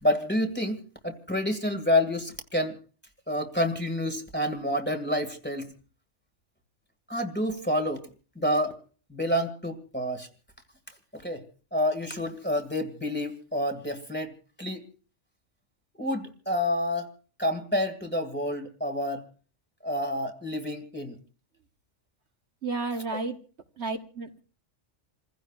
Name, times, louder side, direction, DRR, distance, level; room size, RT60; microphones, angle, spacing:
voice 1, 0.0-2.7 3.3-5.7 7.1-8.0 8.4-8.7 9.1-10.3 11.1-11.4 11.7-14.8 16.0-17.1 17.4-19.2 19.8-21.2 23.1-23.2, left 1 dB, 10° left, 4 dB, 2.0 m, -28 dB
voice 2, 22.6-23.4 23.8-24.4, right 3 dB, 65° right, 4 dB, 1.5 m, -32 dB
28.5 x 15.5 x 2.4 m, 0.38 s
omnidirectional pair, 1.3 m